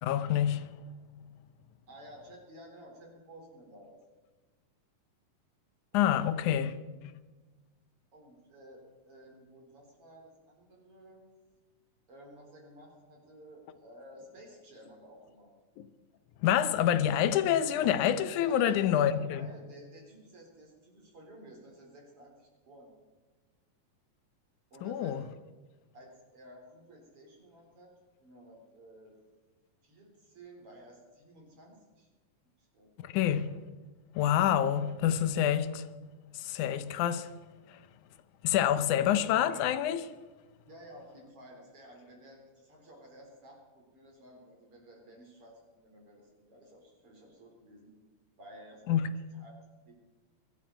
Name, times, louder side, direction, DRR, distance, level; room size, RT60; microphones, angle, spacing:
voice 1, 0.0-0.9 5.9-7.3 15.8-15.9 16.4-19.5 24.8-25.3 33.0-33.7 34.2-35.9 36.3-37.3 37.7-37.8 38.4-40.1 48.9-49.1, left 10 dB, 80° left, 2.2 m, -28 dB
voice 2, 1.9-4.0 5.9-7.0 8.1-11.2 12.1-15.5 18.4-22.9 24.7-25.2 25.9-27.9 28.2-29.1 29.8-32.1 32.6-32.9 38.9-39.4 40.7-47.9 48.4-49.0 49.3-49.5 49.9-50.0, equal, 45° right, 4.6 m, -53 dB
23.5 x 12.0 x 4.5 m
omnidirectional pair, 3.6 m